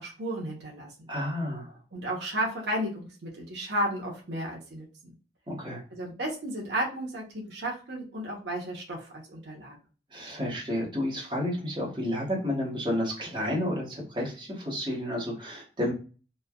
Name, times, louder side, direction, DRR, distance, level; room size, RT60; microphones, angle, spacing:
voice 1, 0.0-1.1 1.9-4.9 5.9-9.8, right 1 dB, 75° right, -1 dB, 0.8 m, -33 dB
voice 2, 1.1-1.8 5.5-5.8 10.1-15.9, left 1 dB, 25° right, -4 dB, 1.0 m, -31 dB
3.1 x 2.2 x 2.3 m, 0.36 s
head